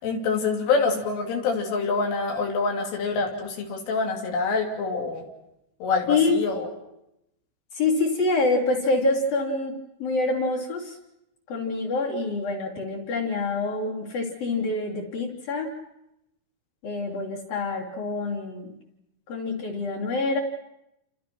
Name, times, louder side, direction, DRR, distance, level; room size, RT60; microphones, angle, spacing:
voice 1, 0.0-5.2 5.8-6.7, left 4 dB, 80° left, 2 dB, 5.6 m, -26 dB
voice 2, 6.1-6.4 7.8-11.0 11.5-15.7 16.8-18.8 19.3-20.4, left 3 dB, 50° left, -3 dB, 4.5 m, -26 dB
29.5 x 26.0 x 6.1 m, 0.87 s
omnidirectional pair, 5.7 m